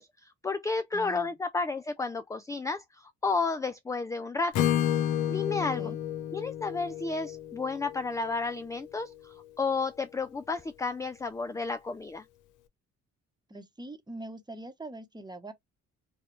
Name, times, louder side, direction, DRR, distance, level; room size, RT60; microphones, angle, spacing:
voice 1, 0.0-4.7 5.3-5.9 6.3-12.2, left 4 dB, 10° left, 0.3 m, -32 dB
voice 2, 0.9-1.4 5.8-6.0 13.5-15.5, right 2 dB, 15° right, 1.0 m, -43 dB
Acoustic guitar / Strum, 4.5-8.5, left 11 dB, 85° left, 0.8 m, -30 dB
4.9 x 2.3 x 3.0 m
cardioid pair, 90°, 30 cm